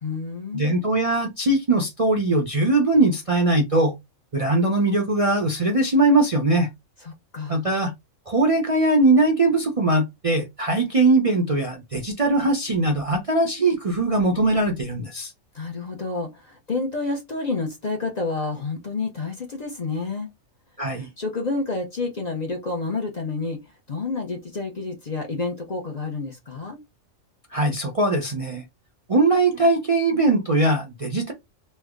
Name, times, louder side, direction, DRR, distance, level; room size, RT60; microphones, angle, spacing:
voice 1, 0.0-0.8 7.0-7.7 15.5-20.3 21.0-23.6 23.9-26.8, left 3 dB, 40° left, 0.7 m, -29 dB
voice 2, 0.5-3.9 4.3-6.7 7.5-7.9 8.3-15.3 20.8-21.1 27.5-28.6 29.1-31.3, right 2 dB, 40° right, 0.5 m, -21 dB
3.2 x 2.1 x 3.5 m
omnidirectional pair, 1.3 m